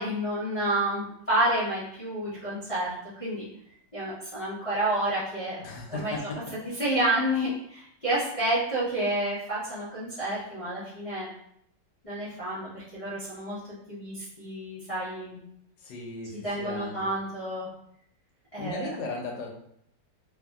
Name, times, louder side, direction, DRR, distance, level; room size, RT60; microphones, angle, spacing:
voice 1, 0.0-2.9 3.2-3.5 3.9-5.6 5.9-6.1 6.6-11.3 12.0-13.6 13.9-15.4 16.4-17.7 18.5-18.9, right 1 dB, 45° left, -11 dB, 0.4 m, -29 dB
voice 2, 5.6-6.4 15.8-16.3 16.6-17.0 18.6-19.5, left 3 dB, 75° left, 1 dB, 1.2 m, -35 dB
2.9 x 2.6 x 2.3 m, 0.70 s
omnidirectional pair, 2.0 m